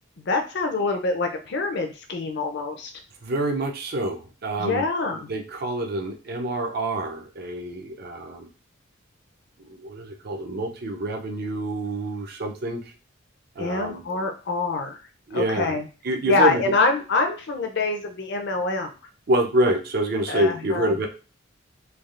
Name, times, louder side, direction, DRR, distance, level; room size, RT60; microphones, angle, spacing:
voice 1, 0.2-2.9 4.6-5.3 13.6-15.0 15.3-15.9 16.2-18.9 20.3-20.9, left 3 dB, 55° left, 5 dB, 0.5 m, -25 dB
voice 2, 3.2-4.8 5.3-8.5 9.6-12.8 13.6-14.0 15.3-15.8 16.0-16.6 19.3-21.1, right 1 dB, 50° right, 3 dB, 0.5 m, -26 dB
3.3 x 2.3 x 2.4 m, 0.34 s
head